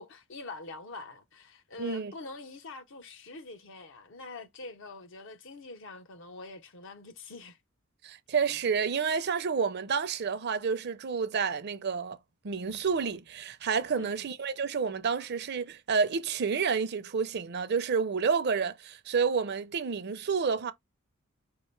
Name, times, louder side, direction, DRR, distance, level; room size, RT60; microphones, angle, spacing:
voice 1, 0.0-7.6 13.9-14.3, left 3 dB, 60° left, 0.7 m, -45 dB
voice 2, 1.8-2.1 8.0-12.2 12.4-20.7, right 5 dB, 50° right, 0.5 m, -29 dB
4.7 x 2.5 x 3.2 m
head